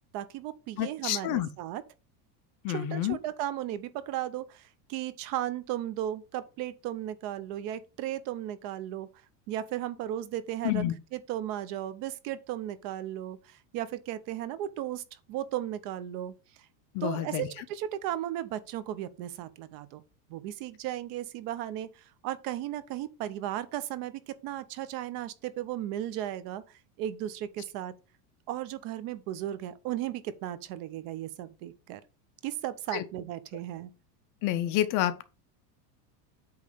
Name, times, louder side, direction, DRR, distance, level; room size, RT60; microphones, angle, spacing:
voice 1, 0.1-1.8 2.7-9.1 9.5-10.8 11.1-15.0 15.3-16.3 17.0-20.0 20.3-27.9 28.5-32.0 32.4-33.9, right 12 dB, 45° right, 0.7 m, -35 dB
voice 2, 0.8-1.5 2.6-3.2 10.6-10.9 16.9-17.5 32.9-33.0 34.4-35.2, left 13 dB, 40° left, 0.6 m, -29 dB
8.6 x 3.2 x 5.5 m
supercardioid pair, 150°, 48 cm